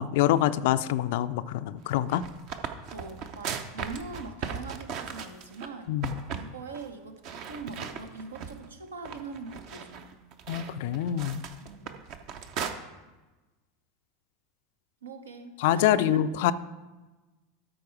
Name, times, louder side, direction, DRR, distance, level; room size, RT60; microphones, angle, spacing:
voice 1, 0.0-2.2 5.9-6.1 10.5-11.5 15.6-16.5, left 12 dB, 55° left, 14 dB, 0.3 m, -25 dB
sound 1, 1.9-5.7 6.0-6.5 6.7-6.9 7.2-8.7 9.0-12.7, right 7 dB, 50° right, 0.7 m, -37 dB
voice 2, 2.9-5.9 6.3-10.2 11.6-12.0 15.0-16.4, right 3 dB, 75° right, 7 dB, 0.8 m, -42 dB
13.0 x 4.6 x 4.7 m, 1.2 s
figure-of-eight pair, 80°, 0 cm